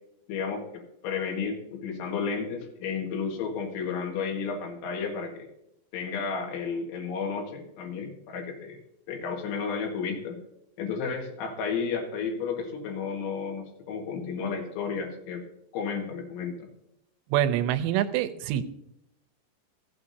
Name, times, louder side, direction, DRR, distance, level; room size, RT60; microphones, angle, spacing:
voice 1, 0.3-5.5 5.9-8.8 9.1-10.4 10.8-15.4 15.7-16.7, left 5 dB, 85° left, 2 dB, 4.1 m, -32 dB
voice 2, 17.3-18.6, right 11 dB, 85° right, 10 dB, 2.8 m, -25 dB
16.0 x 8.3 x 2.7 m, 0.81 s
omnidirectional pair, 5.2 m